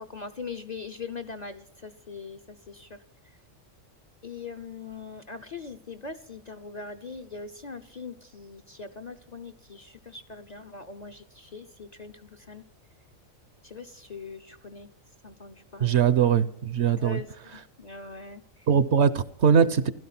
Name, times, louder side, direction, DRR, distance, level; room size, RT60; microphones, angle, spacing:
voice 1, 0.0-3.4 4.2-12.6 13.6-14.9 15.2-16.0 17.0-17.3 17.5-18.7, left 4 dB, 40° left, 0.7 m, -41 dB
voice 2, 15.8-17.2 18.7-19.9, right 7 dB, 60° right, 1.0 m, -21 dB
15.5 x 12.5 x 5.9 m
omnidirectional pair, 1.4 m